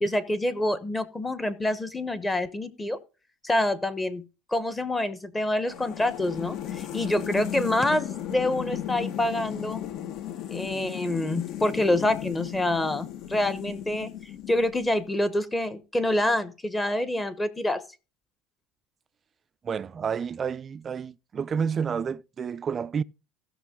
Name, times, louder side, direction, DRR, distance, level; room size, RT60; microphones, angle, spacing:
voice 1, 0.0-3.0 3.4-4.2 4.5-9.8 10.5-14.1 14.5-17.8, left 1 dB, 10° left, 1.0 m, -27 dB
sound 1, 5.7-15.0, left 10 dB, 50° left, 1.1 m, -36 dB
voice 2, 19.6-23.0, right 6 dB, 30° right, 0.4 m, -30 dB
16.5 x 6.1 x 3.7 m
supercardioid pair, 125°, 0 cm